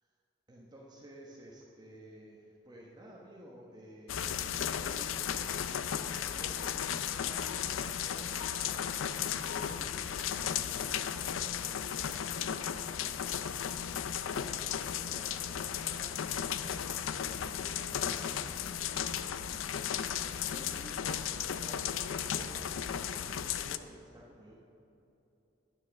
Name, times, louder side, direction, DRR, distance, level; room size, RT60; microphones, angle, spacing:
voice 1, 0.5-16.5 16.8-18.0 18.6-19.9 20.5-21.3 21.5-24.6, equal, 20° right, -3 dB, 1.0 m, -54 dB
sound 1, 4.1-23.8, left 8 dB, 90° left, 0.4 m, -35 dB
10.5 x 7.4 x 6.4 m, 2.9 s
head